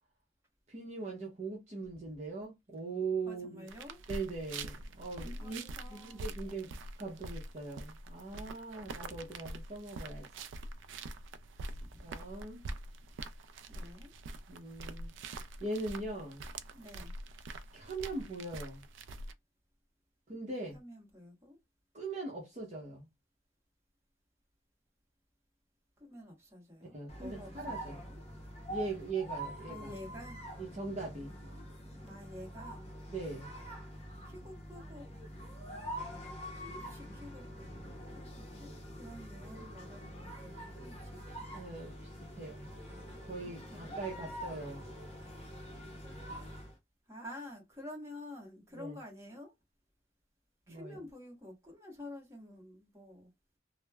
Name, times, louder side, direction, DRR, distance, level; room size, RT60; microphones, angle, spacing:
voice 1, 0.7-3.7 4.1-5.6 5.9-6.7 7.0-10.5 11.6-11.7 12.0-12.7 14.5-15.1 15.6-16.4 17.7-18.8 20.3-20.8 21.9-23.1 26.9-28.0 28.7-29.9 30.6-31.3 33.1-33.5 41.5-41.9 42.3-42.7 43.3-44.8 48.7-49.0 50.7-51.0, right 3 dB, 35° right, 0.7 m, -40 dB
voice 2, 3.2-4.0 5.2-6.3 8.8-9.2 11.7-12.0 13.7-14.1 16.7-17.1 20.7-21.6 26.0-28.2 29.7-30.4 32.0-32.8 34.2-35.1 36.5-37.4 38.1-41.2 43.4-44.0 47.1-49.5 50.7-53.3, left 1 dB, 15° right, 1.0 m, -50 dB
sound 1, 3.7-19.3, right 2 dB, 85° right, 0.3 m, -45 dB
sound 2, 27.1-46.8, right 1 dB, 35° left, 0.6 m, -45 dB
3.0 x 2.0 x 2.2 m
head